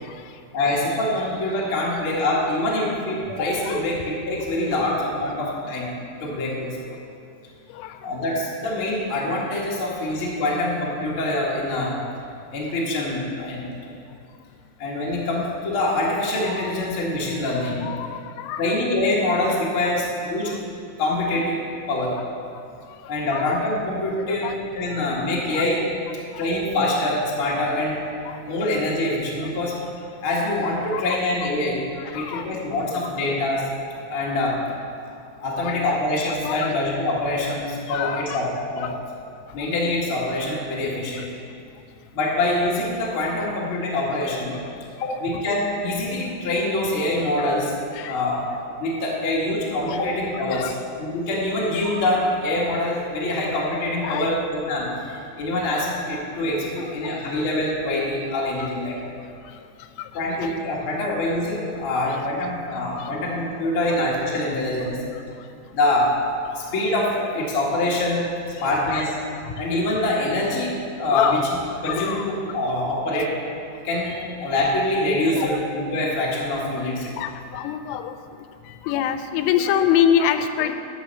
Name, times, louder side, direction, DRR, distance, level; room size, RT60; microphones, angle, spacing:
voice 1, 0.5-5.9 6.2-7.0 8.0-12.0 12.5-13.9 14.8-17.9 18.6-20.6 21.0-22.1 23.1-25.8 26.3-28.0 28.5-29.7 30.2-31.8 32.1-33.6 34.1-34.6 35.4-38.9 39.5-41.3 42.1-44.6 45.0-47.7 48.0-48.5 48.8-50.7 51.0-58.9 60.1-65.0 65.7-66.1 66.5-68.2 68.6-69.1 69.6-70.7 71.0-71.4 71.8-73.3 73.8-77.1, left 1 dB, 60° left, -5 dB, 1.3 m, -25 dB
voice 2, 17.6-18.1 18.4-18.6 20.0-20.1 21.3-21.4 22.1-22.2 23.3-23.5 24.4-24.6 25.5-25.6 28.3-28.4 30.9-31.2 32.1-32.6 35.6-36.0 36.4-36.8 37.9-38.4 38.8-38.9 45.1-45.2 48.0-48.2 49.9-50.0 50.5-50.7 54.0-54.4 58.0-58.1 58.6-58.7 60.4-60.5 62.1-62.2 63.0-63.1 63.8-64.0 68.9-69.0 71.1-71.4 71.8-72.3 75.4-75.5 77.2-78.1 78.9-80.8, left 9 dB, 85° left, 9 dB, 3.2 m, -25 dB
12.0 x 5.9 x 6.9 m, 2.4 s
omnidirectional pair, 5.8 m